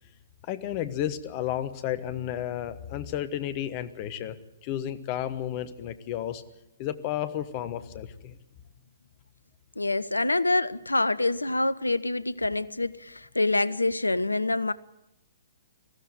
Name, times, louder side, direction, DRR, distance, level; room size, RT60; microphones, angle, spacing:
voice 1, 0.4-4.4 4.6-6.4 6.8-8.4, left 11 dB, 35° left, 13 dB, 1.4 m, -32 dB
voice 2, 9.8-14.7, left 2 dB, 80° left, 18 dB, 0.8 m, -26 dB
20.0 x 15.0 x 9.6 m, 0.86 s
figure-of-eight pair, 120°, 0 cm